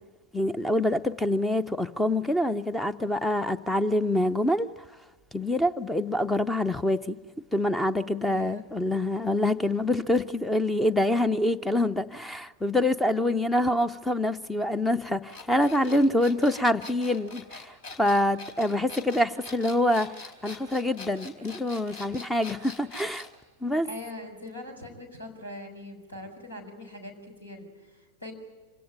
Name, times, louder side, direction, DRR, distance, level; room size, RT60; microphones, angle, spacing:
voice 1, 0.3-4.7 5.3-7.2 7.5-23.3 23.6-23.9, left 1 dB, 5° left, 0.7 m, -26 dB
voice 2, 8.3-8.6 23.8-28.3, left 1 dB, 80° left, 5.4 m, -42 dB
sound 1, 15.3-23.4, left 3 dB, 55° left, 4.2 m, -44 dB
26.0 x 17.5 x 9.1 m
figure-of-eight pair, 90°, 0 cm